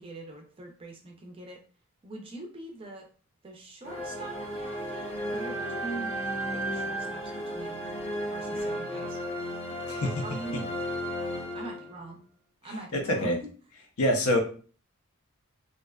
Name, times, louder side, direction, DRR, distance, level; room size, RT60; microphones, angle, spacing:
voice 1, 0.0-1.6 2.0-3.1 3.4-6.2 6.5-7.8 8.3-9.2 10.0-10.8 11.5-12.2 12.6-13.5, right 2 dB, 25° right, 1 dB, 0.4 m, -42 dB
sound 1, 3.8-12.2, equal, 25° left, 0.6 m, -34 dB
voice 2, 12.9-13.4 14.0-14.4, equal, 80° left, 3 dB, 0.6 m, -25 dB
2.5 x 2.1 x 2.2 m, 0.41 s
head